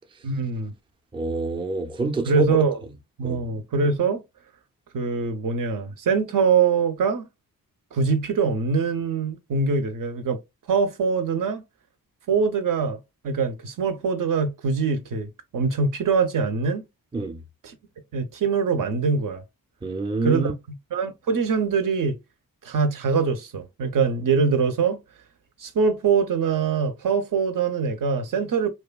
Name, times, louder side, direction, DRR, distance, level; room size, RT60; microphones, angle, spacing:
voice 1, 0.2-0.7 2.3-2.8 3.2-4.2 4.9-7.3 7.9-10.4 10.7-11.6 12.3-13.0 13.2-16.9 17.6-17.8 18.1-19.4 20.2-20.5 20.9-22.2 22.6-25.0 25.6-28.7, right 5 dB, 60° right, 0.5 m, -23 dB
voice 2, 1.1-2.6 3.2-3.4 17.1-17.4 19.8-20.5, right 3 dB, 15° right, 0.4 m, -26 dB
2.8 x 2.3 x 2.3 m
cardioid pair, 85°, 36 cm